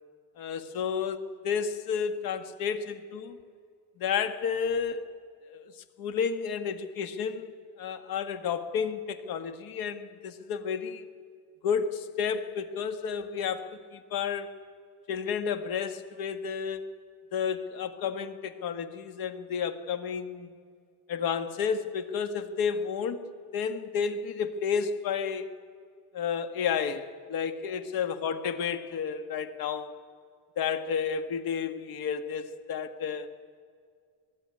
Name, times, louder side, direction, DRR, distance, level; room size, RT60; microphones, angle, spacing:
voice 1, 0.4-3.4 4.0-5.2 5.5-5.7 6.0-7.5 7.8-11.0 11.6-14.6 15.1-16.9 17.3-20.5 21.1-25.5 26.1-29.9 30.6-33.3, left 6 dB, 60° left, 10 dB, 1.7 m, -31 dB
26.5 x 20.0 x 9.7 m, 2.2 s
cardioid pair, 145°, 40 cm